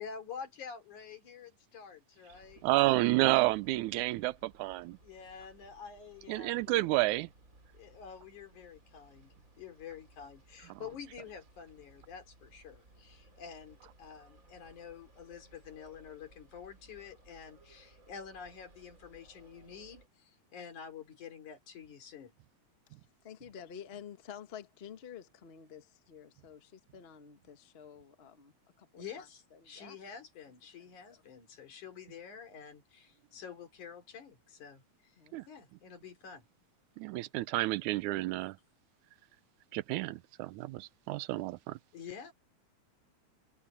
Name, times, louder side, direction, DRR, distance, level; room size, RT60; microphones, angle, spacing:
voice 1, 0.0-3.0 5.0-6.8 7.7-22.3 29.0-35.1 35.5-36.4 41.9-42.3, left 7 dB, 90° left, 4.7 m, -48 dB
sound 1, 2.3-20.1, right 2 dB, 25° right, 4.1 m, -61 dB
voice 2, 2.6-5.0 6.3-7.3 35.3-35.4 37.0-38.6 39.7-41.8, right 18 dB, 85° right, 2.1 m, -30 dB
voice 3, 23.2-30.0 31.1-31.2 35.2-35.4 38.4-38.5, left 8 dB, 45° left, 0.7 m, -50 dB
omnidirectional pair, 3.4 m